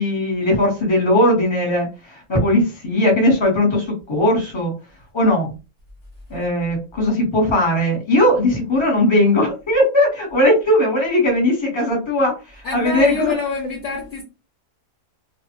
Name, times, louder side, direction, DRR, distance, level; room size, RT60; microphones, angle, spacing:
voice 1, 0.0-4.7 5.1-5.5 6.3-13.3, left 1 dB, 20° left, 1.1 m, -18 dB
voice 2, 12.6-14.2, left 4 dB, 60° left, 0.9 m, -26 dB
2.4 x 2.4 x 2.9 m
omnidirectional pair, 1.6 m